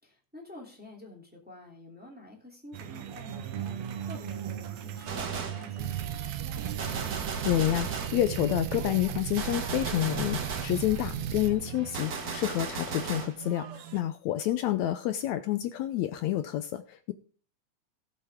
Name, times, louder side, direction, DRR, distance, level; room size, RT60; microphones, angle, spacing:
voice 1, 0.0-7.2 14.5-14.8, left 2 dB, 5° right, -1 dB, 2.7 m, -50 dB
sound 1, 2.7-14.0, right 9 dB, 65° right, 2.0 m, -40 dB
Gunshot gunfire, 5.1-5.7 6.8-8.2 9.4-10.8 11.9-13.4, right 5 dB, 45° right, 1.3 m, -36 dB
sound 2, 5.8-11.5, right 9 dB, 85° right, 2.5 m, -36 dB
voice 2, 7.4-17.1, left 13 dB, 75° left, 10 dB, 1.9 m, -29 dB
17.5 x 7.8 x 3.7 m, 0.41 s
omnidirectional pair, 3.5 m